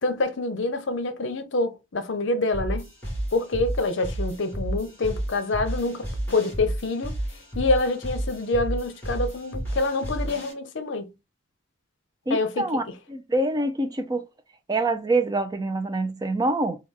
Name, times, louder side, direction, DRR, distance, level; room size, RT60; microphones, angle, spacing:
voice 1, 0.0-2.9 3.3-7.2 7.5-11.1 12.3-12.7, left 2 dB, 65° left, 0.6 m, -26 dB
sound 1, 2.5-10.5, right 1 dB, 10° left, 1.7 m, -32 dB
voice 2, 12.3-12.8 13.1-14.2 14.7-16.8, right 2 dB, 20° right, 0.4 m, -25 dB
3.3 x 2.3 x 3.5 m
head